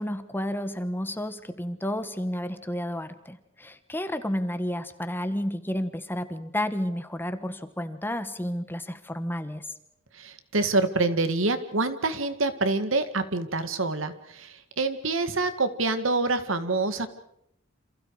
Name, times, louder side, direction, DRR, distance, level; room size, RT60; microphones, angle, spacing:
voice 1, 0.0-9.7, left 1 dB, 10° left, 10 dB, 1.3 m, -31 dB
voice 2, 10.1-17.1, right 3 dB, 70° right, 10 dB, 2.1 m, -26 dB
29.5 x 27.5 x 4.9 m, 0.75 s
head